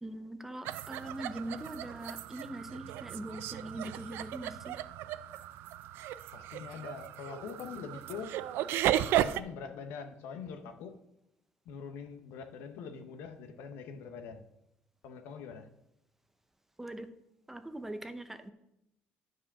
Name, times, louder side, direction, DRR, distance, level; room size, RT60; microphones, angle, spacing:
voice 1, 0.0-4.8 16.8-17.1 17.5-18.5, right 1 dB, 10° right, 0.6 m, -42 dB
sound 1, 0.6-9.4, right 12 dB, 75° right, 0.4 m, -35 dB
voice 2, 6.3-8.4 9.2-11.0 11.6-14.4 15.0-15.7, left 6 dB, 90° left, 1.0 m, -44 dB
10.0 x 4.8 x 6.0 m
cardioid pair, 130°, 4 cm